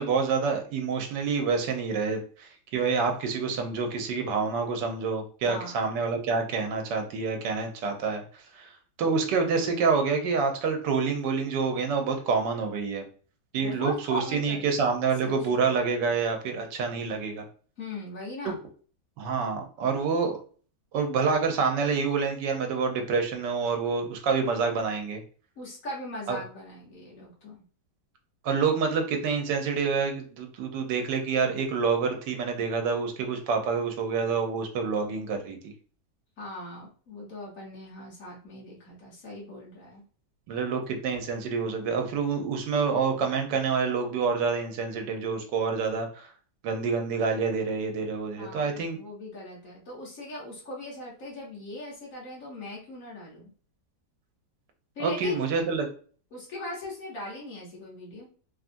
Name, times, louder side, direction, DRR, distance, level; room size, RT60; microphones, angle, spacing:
voice 1, 0.0-8.2 8.5-8.7 9.0-13.0 13.5-17.4 18.4-18.6 19.2-20.4 20.9-25.2 26.3-26.4 28.4-35.7 40.5-46.3 46.6-49.0 55.0-55.9, right 5 dB, 85° right, 4 dB, 1.3 m, -27 dB
voice 2, 5.4-5.8 13.5-14.7 15.2-15.7 17.8-18.6 25.6-27.6 36.4-40.0 48.4-53.5 55.0-55.4 56.3-58.3, left 1 dB, 55° left, -4 dB, 1.2 m, -39 dB
3.2 x 2.4 x 2.5 m, 0.42 s
omnidirectional pair, 1.8 m